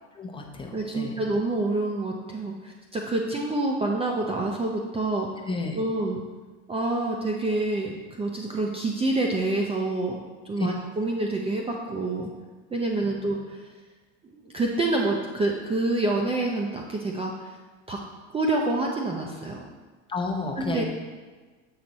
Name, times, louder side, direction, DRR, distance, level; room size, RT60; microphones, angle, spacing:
voice 1, 0.2-1.1 5.5-5.8 10.6-10.7 20.1-20.8, left 3 dB, 15° left, 1 dB, 0.8 m, -31 dB
voice 2, 0.7-5.5 5.7-6.2 6.7-10.2 10.4-12.3 12.7-13.6 14.3-17.5 17.9-18.0 18.3-19.7 20.6-20.8, right 2 dB, 15° right, 0 dB, 0.5 m, -27 dB
7.7 x 4.5 x 4.1 m, 1.3 s
supercardioid pair, 120°, 35 cm